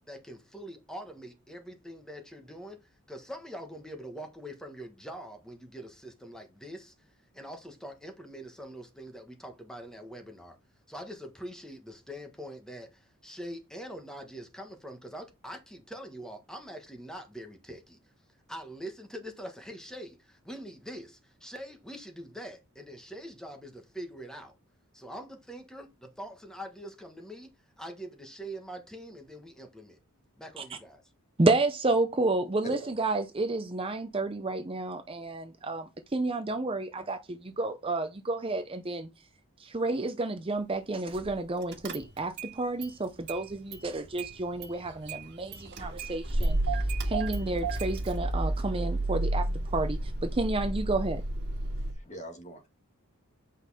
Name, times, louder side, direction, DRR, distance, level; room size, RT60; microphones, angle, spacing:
voice 1, 0.1-2.8 3.1-7.1 7.3-10.6 10.9-18.0 18.5-24.5 24.9-30.0 30.4-31.0, equal, 5° left, 1.3 m, -44 dB
voice 2, 31.4-39.1 39.6-46.6 47.0-49.5 49.7-51.2, right 2 dB, 25° right, 0.6 m, -30 dB
Car / Engine starting, 41.2-41.4 41.7-42.5 42.8-43.9 44.2-51.9, right 1 dB, 50° right, 1.9 m, -31 dB
voice 3, 51.8-52.7, right 1 dB, 30° left, 1.9 m, -42 dB
8.4 x 5.3 x 4.2 m
head